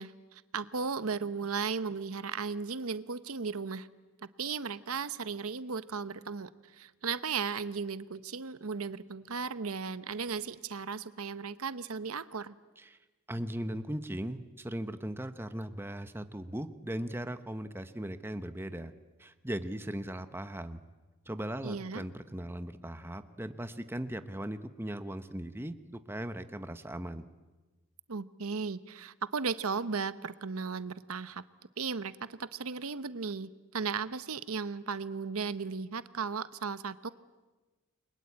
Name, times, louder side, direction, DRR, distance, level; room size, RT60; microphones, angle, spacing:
voice 1, 0.0-3.9 4.4-12.5 21.6-22.0 28.1-31.4 31.8-37.1, right 5 dB, 85° right, 14 dB, 0.9 m, -36 dB
voice 2, 13.3-18.9 19.2-20.8 21.3-27.2, right 1 dB, 10° right, 10 dB, 1.0 m, -38 dB
29.5 x 23.0 x 8.6 m, 1.2 s
head